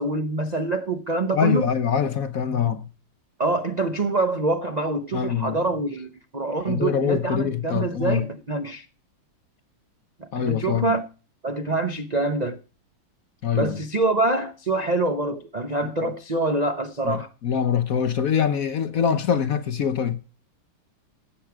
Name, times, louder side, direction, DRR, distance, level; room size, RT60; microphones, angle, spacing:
voice 1, 0.0-1.6 3.4-8.8 10.2-11.1 11.4-12.6 13.5-17.3, right 2 dB, 65° right, 0.4 m, -25 dB
voice 2, 1.3-2.9 5.1-5.6 6.7-8.3 10.3-10.9 13.4-13.8 15.8-15.9 17.0-20.2, left 8 dB, 55° left, 1.0 m, -24 dB
16.0 x 8.1 x 4.8 m
omnidirectional pair, 2.3 m